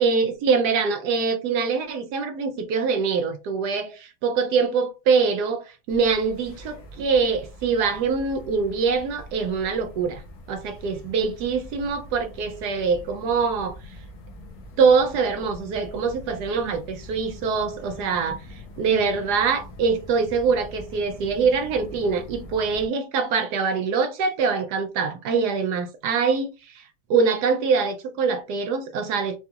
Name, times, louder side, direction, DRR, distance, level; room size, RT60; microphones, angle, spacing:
voice 1, 0.0-10.2 10.5-13.8 14.8-29.4, right 5 dB, 70° right, 1.0 m, -24 dB
sound 1, 5.9-22.9, left 1 dB, 80° left, 1.6 m, -43 dB
4.8 x 2.3 x 2.7 m
omnidirectional pair, 2.2 m